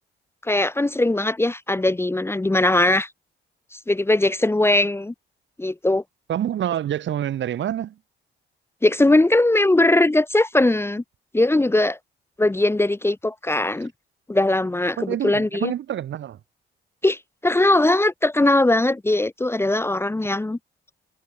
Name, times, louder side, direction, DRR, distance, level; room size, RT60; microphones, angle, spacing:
voice 1, 0.4-3.1 3.7-5.1 5.6-6.0 8.8-11.0 11.3-12.0 12.4-13.9 14.3-15.7 17.0-20.6, left 2 dB, 10° left, 1.1 m, -20 dB
voice 2, 6.3-8.0 15.0-16.4, right 11 dB, 70° right, 3.3 m, -27 dB
cardioid pair, 90°, 20 cm